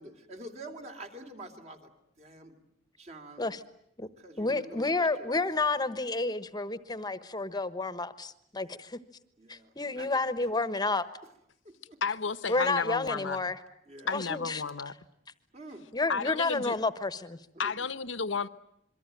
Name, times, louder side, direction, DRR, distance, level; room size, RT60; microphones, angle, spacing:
voice 1, 0.0-1.9 2.2-2.6 3.0-3.5 4.2-5.4 8.5-8.7 9.4-10.2 10.5-10.6 11.6-12.0 13.9-14.2 15.5-15.9 17.5-17.9, right 2 dB, 35° right, 3.1 m, -47 dB
voice 2, 4.4-9.0 9.5-11.0 12.5-13.6 14.1-14.6 15.9-17.4, left 3 dB, 20° left, 1.2 m, -30 dB
voice 3, 12.0-13.4 14.1-14.9 16.1-16.8 17.6-18.5, left 5 dB, 65° left, 1.0 m, -32 dB
27.0 x 23.5 x 9.1 m
head